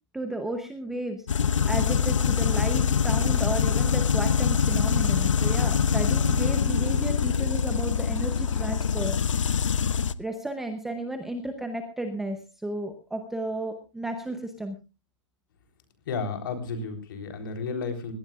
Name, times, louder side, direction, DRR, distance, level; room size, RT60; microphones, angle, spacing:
voice 1, 0.1-1.2 1.6-9.2 10.2-14.8, right 1 dB, ahead, 6 dB, 0.7 m, -33 dB
sound 1, 1.3-10.1, left 7 dB, 80° left, 0.9 m, -24 dB
voice 2, 16.1-18.1, left 4 dB, 45° left, 6 dB, 3.7 m, -32 dB
21.0 x 18.0 x 2.4 m, 0.29 s
hypercardioid pair, 170°, 16 cm